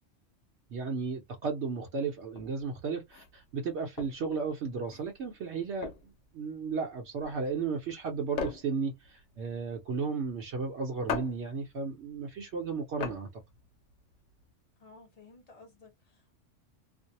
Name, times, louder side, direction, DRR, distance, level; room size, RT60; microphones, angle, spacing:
voice 1, 0.7-13.3, right 5 dB, 70° right, 0.9 m, -34 dB
sound 1, 2.3-14.5, left 6 dB, 80° left, 1.0 m, -42 dB
voice 2, 14.8-16.4, left 3 dB, 30° left, 1.1 m, -55 dB
2.5 x 2.0 x 2.7 m
omnidirectional pair, 1.3 m